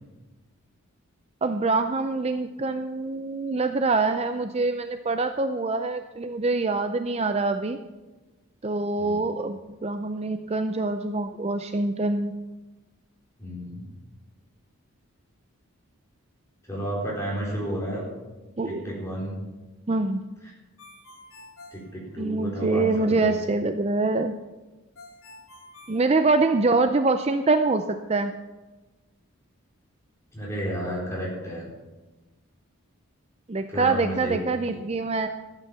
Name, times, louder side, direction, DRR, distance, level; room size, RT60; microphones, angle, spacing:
voice 1, 1.4-7.8 8.6-12.4 18.6-18.9 19.9-20.2 22.2-24.4 25.9-28.3 33.5-35.3, right 3 dB, 30° right, 8 dB, 0.5 m, -25 dB
voice 2, 9.0-9.3 13.4-13.9 16.7-18.1 18.6-19.4 21.7-23.4 30.3-31.7 33.7-34.8, equal, 15° left, -4 dB, 4.3 m, -32 dB
Ringtone, 20.8-22.7 25.0-26.8, left 2 dB, 65° left, 4.7 m, -49 dB
14.5 x 9.2 x 6.9 m, 1.2 s
head